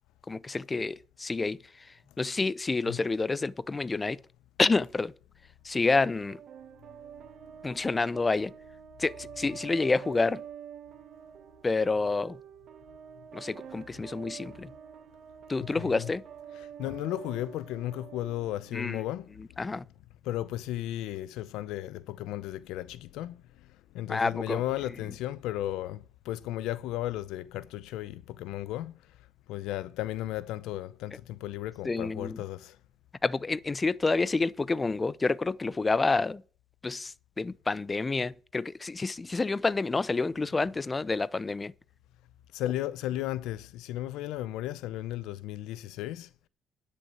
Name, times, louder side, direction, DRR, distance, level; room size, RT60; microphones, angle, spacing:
voice 1, 0.3-4.2 4.6-5.1 5.6-6.4 7.6-8.5 9.0-10.4 11.6-12.4 13.3-14.7 15.5-16.2 18.7-19.0 19.6-19.8 24.1-24.6 31.8-32.4 33.2-36.4 36.8-41.7, left 3 dB, 25° left, 0.5 m, -28 dB
sound 1, 6.2-19.3, right 9 dB, 60° right, 1.3 m, -47 dB
voice 2, 15.6-16.1 16.6-19.6 20.2-29.2 29.5-32.8 42.5-46.3, left 14 dB, 90° left, 0.6 m, -35 dB
10.5 x 6.6 x 8.9 m
cardioid pair, 90°, 0 cm